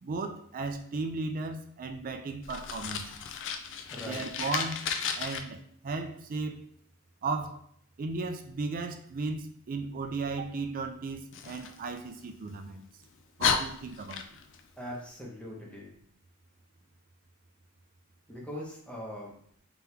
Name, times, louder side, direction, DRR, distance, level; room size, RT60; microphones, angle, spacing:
voice 1, 0.0-3.1 4.0-4.9 5.2-6.7 7.2-7.6 8.0-12.9 13.4-14.2, right 3 dB, 40° right, 0.4 m, -35 dB
Fire, 2.4-5.4 11.3-12.6 13.0-13.1 13.4-14.6, left 7 dB, 55° left, 0.4 m, -33 dB
voice 2, 3.9-4.2 14.8-15.9 18.3-19.3, equal, 5° left, 0.9 m, -41 dB
3.5 x 2.9 x 3.3 m
head